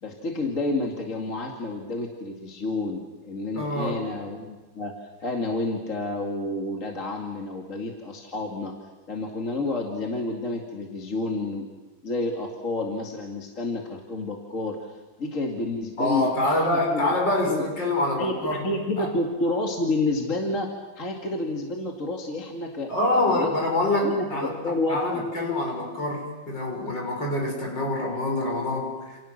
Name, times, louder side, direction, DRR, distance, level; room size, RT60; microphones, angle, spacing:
voice 1, 0.0-8.7 9.1-11.7 12.0-17.1 17.5-17.6 18.1-22.9 23.2-23.5 24.0-25.3, left 2 dB, 40° left, 1 dB, 2.5 m, -30 dB
voice 2, 3.5-4.0 16.0-18.7 19.0-19.1 22.9-29.2, left 1 dB, 60° left, 0 dB, 6.9 m, -26 dB
29.5 x 28.0 x 6.6 m, 1.2 s
omnidirectional pair, 2.2 m